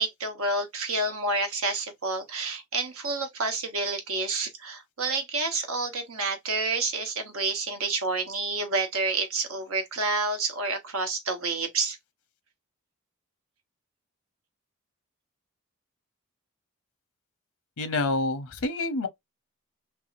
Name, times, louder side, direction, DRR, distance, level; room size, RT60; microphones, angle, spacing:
voice 1, 0.0-12.0, right 3 dB, 80° right, 1.1 m, -29 dB
voice 2, 17.8-19.1, left 2 dB, 90° left, 0.7 m, -27 dB
3.5 x 2.7 x 2.5 m
head